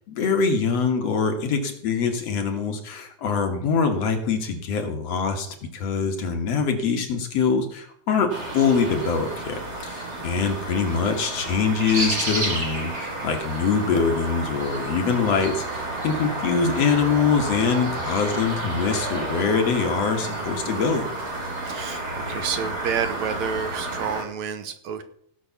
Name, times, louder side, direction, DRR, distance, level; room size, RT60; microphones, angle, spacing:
voice 1, 0.2-21.1, left 5 dB, 60° left, 5 dB, 2.3 m, -24 dB
sound 1, 8.3-24.2, right 2 dB, 20° right, 2.9 m, -31 dB
voice 2, 20.2-20.7 21.6-25.0, right 7 dB, 70° right, 9 dB, 2.1 m, -30 dB
16.5 x 6.2 x 7.0 m, 0.65 s
omnidirectional pair, 3.6 m